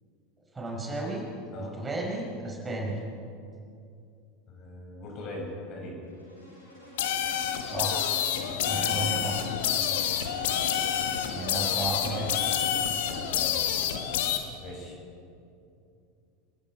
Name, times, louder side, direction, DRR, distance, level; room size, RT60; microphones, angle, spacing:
voice 1, 0.5-1.2 1.6-3.0 7.6-8.1 8.7-9.4 11.3-12.3, right 2 dB, 15° right, -2 dB, 5.2 m, -33 dB
voice 2, 4.5-6.0 8.5-9.0 13.2-13.6 14.6-15.0, left 1 dB, 40° left, -1 dB, 6.9 m, -41 dB
Insect, 6.0-14.3, equal, 90° left, 6.4 m, -45 dB
sound 1, 7.0-14.4, left 9 dB, 60° left, 1.7 m, -28 dB
28.0 x 19.5 x 4.9 m, 2.5 s
figure-of-eight pair, 80°, 0 cm